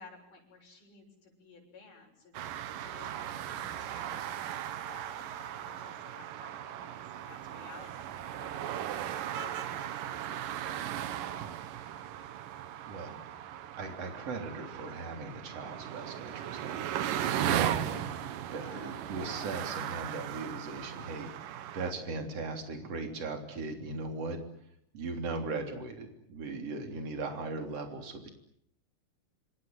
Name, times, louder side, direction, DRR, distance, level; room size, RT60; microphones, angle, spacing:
voice 1, 0.0-11.6 18.4-19.0, left 4 dB, 70° left, 0 dB, 8.3 m, -54 dB
sound 1, 2.3-21.9, right 11 dB, 80° right, 2.9 m, -37 dB
voice 2, 12.9-13.2 13.5-24.4 24.9-28.3, right 3 dB, 45° right, 5 dB, 4.4 m, -39 dB
27.0 x 25.5 x 7.8 m, 0.71 s
omnidirectional pair, 3.8 m